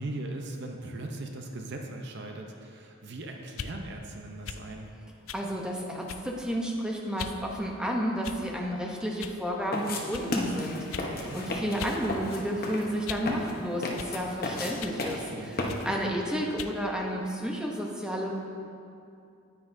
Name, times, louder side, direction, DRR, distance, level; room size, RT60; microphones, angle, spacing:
voice 1, 0.0-4.9 11.0-11.4 15.2-15.8, right 2 dB, 55° right, 3 dB, 0.6 m, -39 dB
sound 1, 3.5-3.8 4.4-4.7 5.3-5.5 6.1-6.4 7.2-7.4 8.2-8.6 9.2-9.4 10.1-10.3 10.9-11.1 11.8-12.0 12.3-13.3 14.0-14.2 14.8-15.0 15.7-15.9 16.6-16.8, left 8 dB, 75° left, 0.4 m, -40 dB
voice 2, 5.3-11.0 11.3-18.3, equal, 5° right, -1 dB, 0.7 m, -31 dB
sound 2, 9.7-16.1, left 2 dB, 45° left, 0.9 m, -34 dB
9.6 x 9.3 x 2.6 m, 2.5 s
head